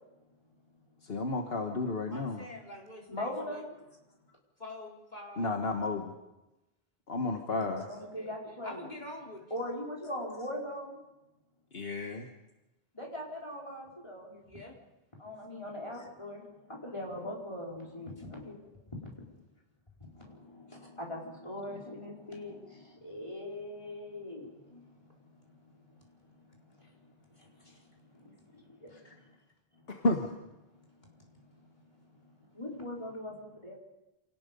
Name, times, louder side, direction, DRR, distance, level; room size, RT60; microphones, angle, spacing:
voice 1, 1.0-2.5 5.4-6.1 7.1-7.9 11.7-12.3 29.0-29.1 29.9-30.3, left 2 dB, 70° left, 3 dB, 1.6 m, -32 dB
voice 2, 2.1-3.6 4.6-5.5 8.0-8.3 8.6-9.4 14.4-14.7, left 1 dB, 45° left, -2 dB, 4.5 m, -45 dB
voice 3, 3.1-3.8 7.5-8.8 9.5-11.0 12.9-14.4 15.2-18.7 19.0-19.3 20.2-25.2 25.4-25.8 26.2-29.2 29.8-30.1 31.1-31.7 32.2-33.7, left 1 dB, 30° left, -3 dB, 5.0 m, -42 dB
27.5 x 18.5 x 5.3 m, 0.97 s
omnidirectional pair, 1.0 m